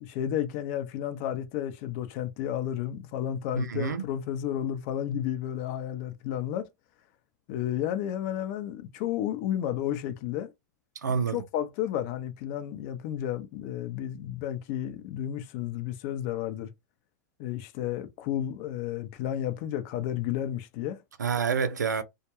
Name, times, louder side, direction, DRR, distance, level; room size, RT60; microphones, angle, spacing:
voice 1, 0.0-6.7 7.5-10.5 11.3-16.7 17.4-21.0, left 11 dB, 50° left, 0.6 m, -32 dB
voice 2, 3.5-4.1 11.0-11.4 21.2-22.0, right 6 dB, 90° right, 0.5 m, -27 dB
2.2 x 2.2 x 2.9 m
hypercardioid pair, 105°, 9 cm